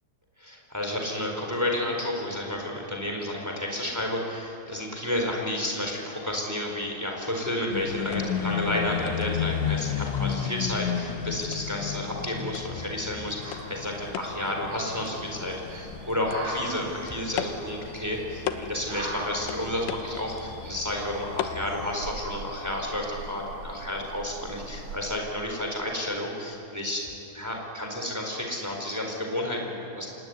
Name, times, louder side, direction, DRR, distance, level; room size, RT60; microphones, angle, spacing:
voice 1, 0.4-27.1 27.3-30.1, left 1 dB, 5° right, 1 dB, 3.5 m, -31 dB
sound 1, 7.7-22.0, left 9 dB, 80° left, 3.3 m, -33 dB
sound 2, 13.4-25.0, right 1 dB, 75° right, 7.8 m, -42 dB
26.5 x 20.0 x 9.6 m, 2.9 s
omnidirectional pair, 5.2 m